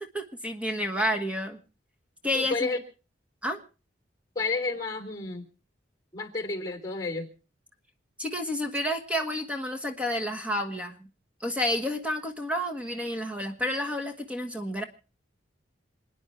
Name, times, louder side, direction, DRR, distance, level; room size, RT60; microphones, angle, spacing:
voice 1, 0.1-1.6 2.2-2.7 3.4-3.6 8.2-11.0 11.4-14.8, left 1 dB, 5° right, 4 dB, 1.3 m, -30 dB
voice 2, 2.3-2.8 4.3-5.5 6.1-7.3, left 3 dB, 20° left, 6 dB, 3.4 m, -31 dB
28.0 x 9.8 x 4.3 m, 0.36 s
head